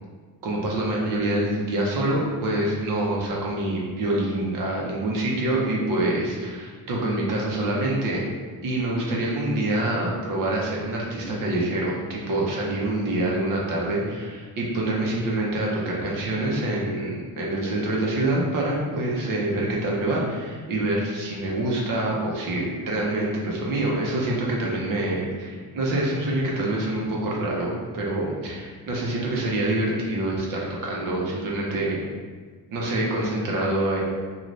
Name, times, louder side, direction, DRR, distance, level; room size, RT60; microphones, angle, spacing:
voice 1, 0.4-8.2 8.6-32.0 32.7-34.0, right 1 dB, 60° right, -3 dB, 0.8 m, -26 dB
2.6 x 2.4 x 3.1 m, 1.5 s
cardioid pair, 145°, 37 cm